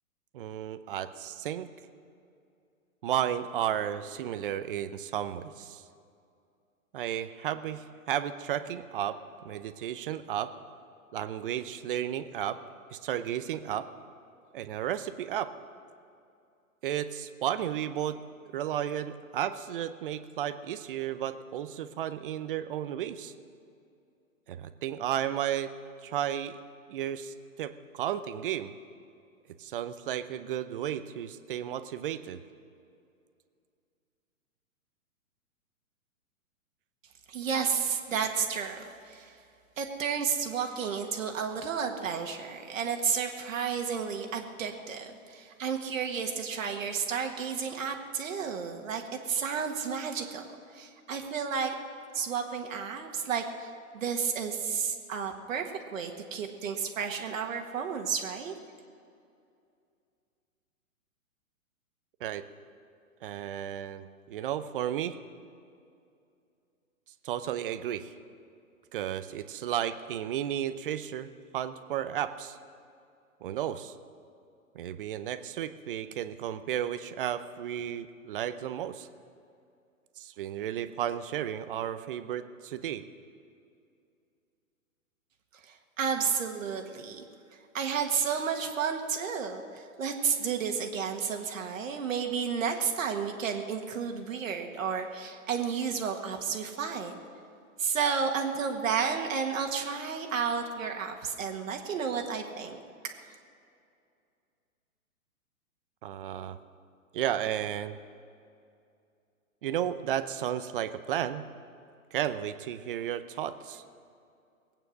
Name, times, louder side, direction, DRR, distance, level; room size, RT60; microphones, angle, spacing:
voice 1, 0.3-1.7 3.0-5.8 6.9-10.5 11.1-12.6 12.9-13.9 14.5-15.5 16.8-18.2 18.5-23.3 24.5-25.7 26.0-26.6 26.9-28.7 29.6-32.4 62.2-62.4 63.2-65.2 67.2-68.1 68.9-72.6 73.4-73.9 74.7-79.1 80.2-83.0 106.0-106.6 107.1-108.0 109.6-111.5 112.1-113.8, right 10 dB, 40° right, 12 dB, 0.7 m, -33 dB
voice 2, 37.3-39.3 39.8-50.5 50.7-51.7 52.1-58.5 85.6-87.2 87.7-97.1 97.8-103.3, right 6 dB, 65° right, 4 dB, 1.7 m, -32 dB
20.0 x 9.0 x 6.5 m, 2.4 s
hypercardioid pair, 140°, 43 cm